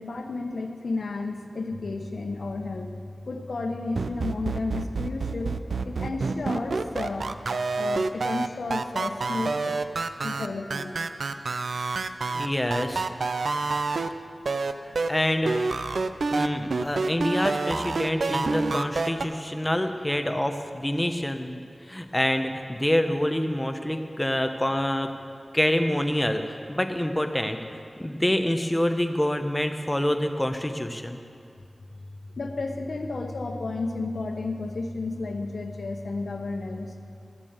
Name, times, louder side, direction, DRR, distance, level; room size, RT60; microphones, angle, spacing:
voice 1, 0.0-5.6 5.8-7.3 7.7-9.8 10.2-10.9 11.7-11.9 12.3-13.2 19.0-19.5 32.4-36.9, left 3 dB, 75° left, 4 dB, 1.1 m, -32 dB
sound 1, 4.0-14.1 14.5-15.1 15.5-19.3, right 3 dB, 75° right, 0.5 m, -27 dB
voice 2, 12.3-13.1 15.1-15.5 16.3-25.1 25.5-31.2, left 1 dB, 15° left, 6 dB, 1.0 m, -26 dB
13.5 x 7.2 x 8.1 m, 2.3 s
wide cardioid pair, 65°, 0 cm